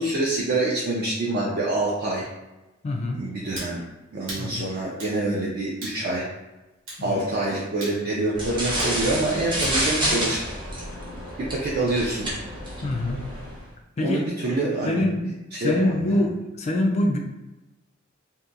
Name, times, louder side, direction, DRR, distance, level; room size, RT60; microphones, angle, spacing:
voice 1, 0.0-2.3 3.2-3.8 4.1-6.2 7.0-10.4 11.4-12.3 14.0-15.0 15.5-15.9, right 2 dB, 50° right, -4 dB, 0.4 m, -26 dB
voice 2, 2.8-3.2 4.4-4.7 7.0-7.3 12.8-13.2 14.0-14.3 14.8-15.3 15.6-17.2, left 1 dB, 35° left, 2 dB, 0.3 m, -24 dB
sound 1, 3.5-3.8 4.3-4.5 5.0-5.2 5.8-6.0 6.9-7.0 7.8-8.0 8.8-9.0 9.6-9.8, right 1 dB, 85° right, 1.0 m, -37 dB
sound 2, 8.3-13.6, right 1 dB, 25° right, 0.7 m, -29 dB
2.8 x 2.2 x 2.4 m, 1.0 s
head